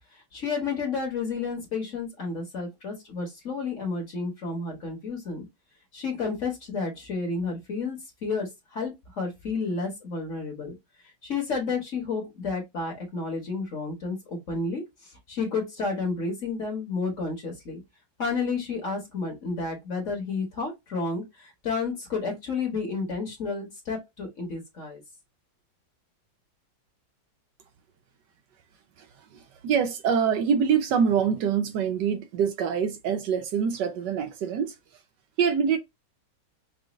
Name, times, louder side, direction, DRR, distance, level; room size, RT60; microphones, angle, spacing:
voice 1, 0.3-5.5 5.9-10.7 11.2-17.8 18.2-25.0, left 4 dB, 45° left, 1.3 m, -31 dB
voice 2, 29.3-34.7 35.4-35.8, right 7 dB, 70° right, 1.2 m, -25 dB
5.0 x 2.5 x 2.4 m
omnidirectional pair, 2.0 m